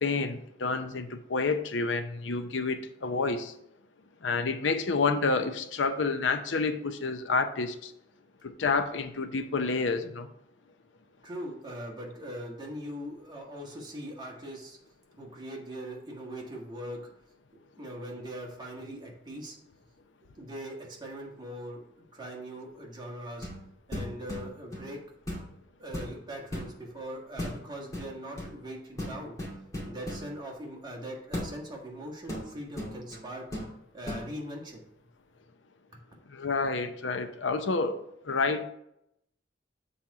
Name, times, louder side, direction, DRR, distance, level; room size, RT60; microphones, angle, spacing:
voice 1, 0.0-3.5 4.2-7.9 8.4-10.3 36.3-38.0 38.2-38.6, left 4 dB, 85° left, 9 dB, 0.6 m, -29 dB
voice 2, 11.2-14.8 15.2-17.0 17.8-19.6 20.4-21.8 22.1-23.5 23.9-25.0 25.8-29.3 29.8-33.4 33.9-34.8, equal, 25° right, -1 dB, 1.6 m, -41 dB
sound 1, 23.4-23.6 23.9-24.9 25.3-25.5 25.9-26.7 27.4-27.6 27.9-28.5 29.0-30.3 31.3-31.5 32.3-33.2 33.5-33.7 34.0-34.3, left 1 dB, 20° left, 2.3 m, -36 dB
7.5 x 4.2 x 4.8 m, 0.78 s
head